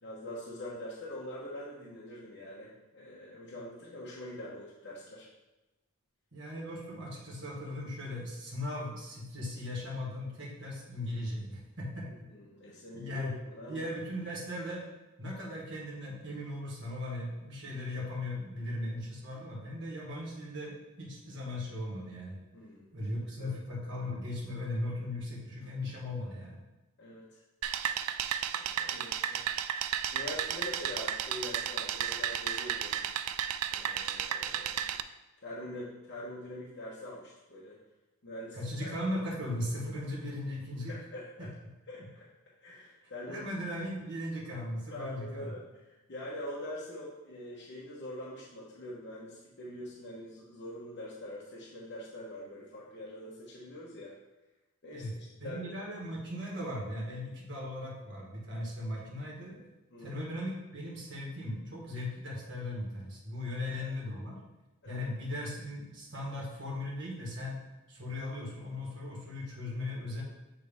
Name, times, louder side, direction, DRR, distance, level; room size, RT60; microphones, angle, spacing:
voice 1, 0.0-5.3 12.3-13.9 22.5-22.9 23.4-23.5 27.0-27.4 28.6-29.5 30.1-33.1 33.7-34.9 35.4-37.8 38.2-38.9 40.9-41.5 41.9-42.3 42.6-43.4 44.9-54.1 54.8-55.6 59.9-60.2 63.4-63.9 64.8-65.0, left 1 dB, 50° left, -7 dB, 1.1 m, -44 dB
voice 2, 6.3-12.1 12.9-13.3 13.7-14.9 15.2-22.4 22.9-26.6 38.5-41.0 41.4-41.5 43.3-45.5 54.9-55.1 55.4-59.6 60.0-64.4 64.9-67.6 67.9-70.2, left 1 dB, 55° right, -4 dB, 1.9 m, -38 dB
sound 1, 27.6-35.0, right 10 dB, 80° right, 0.3 m, -33 dB
8.8 x 3.2 x 3.6 m, 1.0 s
head